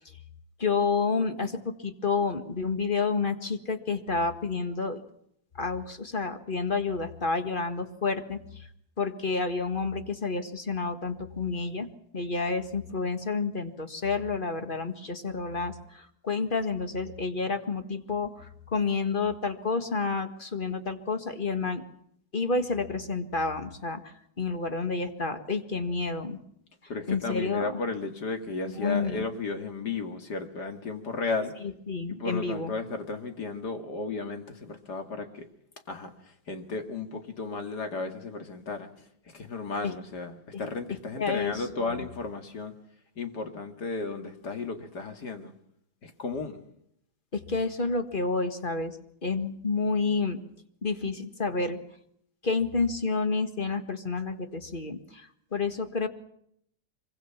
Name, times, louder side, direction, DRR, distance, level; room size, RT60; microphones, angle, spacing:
voice 1, 0.6-5.0 5.6-8.7 9.0-11.9 12.1-21.8 22.3-26.4 27.1-27.8 28.7-29.2 31.6-32.7 39.8-39.9 40.5-40.7 41.2-42.0 47.3-49.0 49.2-50.4 50.8-51.8 52.4-56.1, left 4 dB, 25° left, 8 dB, 1.7 m, -30 dB
voice 2, 26.9-31.5 32.1-35.5 35.9-36.1 36.5-38.9 39.3-42.7 43.2-45.5 46.0-46.6, left 4 dB, 50° left, 6 dB, 2.7 m, -34 dB
25.0 x 24.0 x 5.9 m, 0.72 s
omnidirectional pair, 2.4 m